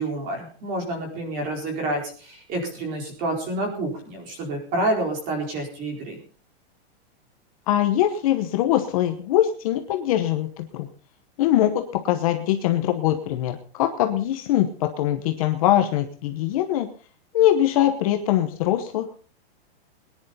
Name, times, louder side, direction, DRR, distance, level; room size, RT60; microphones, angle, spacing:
voice 1, 0.0-6.2, right 1 dB, 25° right, 2 dB, 4.5 m, -28 dB
voice 2, 7.7-10.9 11.4-16.9 17.3-19.1, left 12 dB, 30° left, 6 dB, 1.0 m, -22 dB
21.5 x 10.5 x 4.1 m, 0.39 s
supercardioid pair, 175°, 33 cm